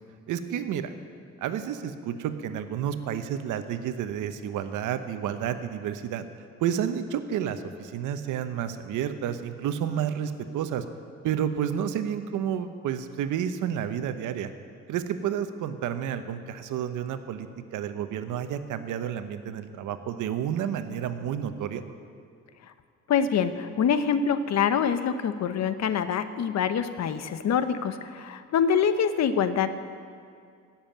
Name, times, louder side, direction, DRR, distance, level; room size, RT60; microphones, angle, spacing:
voice 1, 0.3-0.9 1.4-6.3 6.6-10.8 11.2-14.5 14.9-17.5 17.7-21.9, right 9 dB, 85° right, 10 dB, 1.0 m, -30 dB
voice 2, 23.1-29.7, left 7 dB, 60° left, 11 dB, 0.9 m, -25 dB
16.0 x 7.3 x 9.2 m, 2.3 s
cardioid pair, 90°, 30 cm